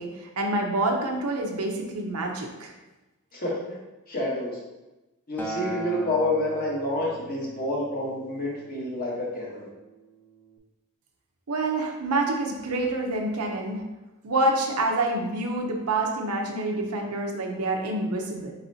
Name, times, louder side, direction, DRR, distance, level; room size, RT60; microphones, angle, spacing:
voice 1, 0.0-2.7 11.5-13.8 14.2-18.5, right 2 dB, 90° right, 1 dB, 0.7 m, -27 dB
voice 2, 3.3-3.8 4.1-4.6 5.3-9.7, left 1 dB, 45° left, -4 dB, 1.2 m, -28 dB
Acoustic guitar, 5.4-9.7 10.5-10.6, right 2 dB, 10° left, 0.5 m, -39 dB
4.1 x 4.1 x 2.7 m, 1.1 s
head